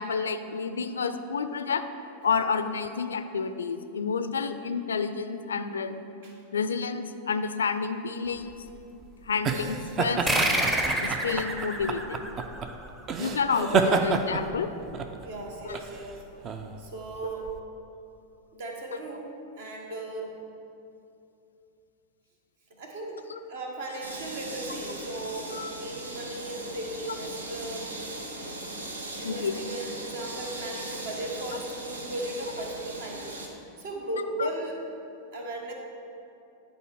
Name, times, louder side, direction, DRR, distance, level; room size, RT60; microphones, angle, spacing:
voice 1, 0.0-1.8 2.2-5.9 6.5-8.6 9.3-10.3 11.0-12.3 13.2-14.7 15.6-15.8 23.3-23.4 25.5-25.7 29.2-29.5 34.4-34.5, left 5 dB, 70° left, 10 dB, 0.4 m, -29 dB
sound 1, 8.4-17.6, right 4 dB, 30° right, 0.5 m, -30 dB
sound 2, 10.3-13.3, right 1 dB, 10° right, 0.8 m, -28 dB
voice 2, 15.2-17.5 18.5-19.3 19.6-20.4 22.7-23.2 23.5-27.9 29.2-34.8 35.3-35.7, right 2 dB, 55° right, 1 dB, 1.2 m, -37 dB
sound 3, 24.0-33.5, right 1 dB, 75° right, 0.8 m, -39 dB
10.5 x 4.4 x 4.8 m, 2.7 s
figure-of-eight pair, 90°, 0 cm